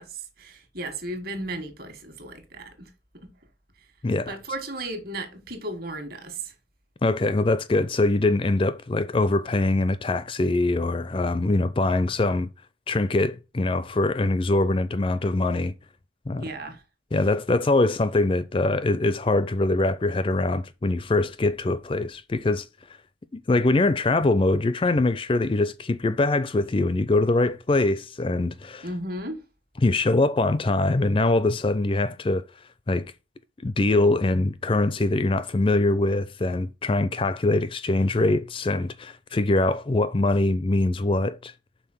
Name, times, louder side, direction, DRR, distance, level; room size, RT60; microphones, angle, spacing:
voice 1, 0.0-3.3 4.3-6.5 16.3-16.8 28.8-29.4, right 1 dB, 50° right, 1.6 m, -35 dB
voice 2, 4.0-4.3 7.0-12.5 12.9-15.7 16.3-16.4 17.1-22.7 23.3-28.9 29.8-32.4 32.9-33.1 33.6-41.5, left 2 dB, 25° left, 0.4 m, -23 dB
5.6 x 4.2 x 6.1 m
head